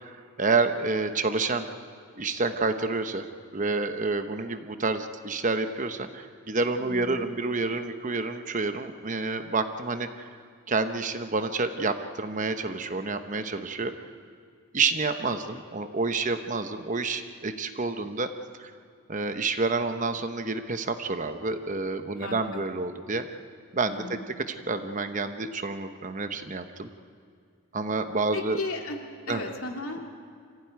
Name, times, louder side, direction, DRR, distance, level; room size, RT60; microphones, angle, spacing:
voice 1, 0.0-1.7 2.1-3.3 3.5-10.4 10.7-14.1 14.7-18.3 18.6-18.7 19.1-23.3 23.7-24.2 24.5-26.9 27.7-28.6 29.3-29.4, right 3 dB, 35° right, 8 dB, 1.0 m, -29 dB
voice 2, 6.8-7.3 22.1-22.6 23.9-24.3 28.3-29.0 29.3-30.1, left 2 dB, 70° left, 2 dB, 2.5 m, -35 dB
26.0 x 15.5 x 9.5 m, 2.1 s
head